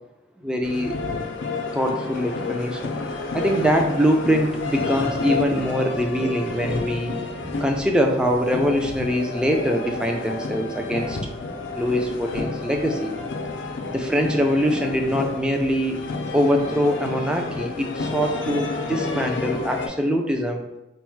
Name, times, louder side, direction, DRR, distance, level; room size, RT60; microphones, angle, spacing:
voice 1, 0.4-1.0 1.7-3.0 3.3-7.2 7.4-11.2 11.7-13.1 13.9-16.0 16.3-20.6, equal, 5° right, 2 dB, 0.3 m, -23 dB
sound 1, 0.6-19.9, left 3 dB, 80° left, 0.5 m, -30 dB
4.1 x 2.1 x 4.4 m, 1.0 s
head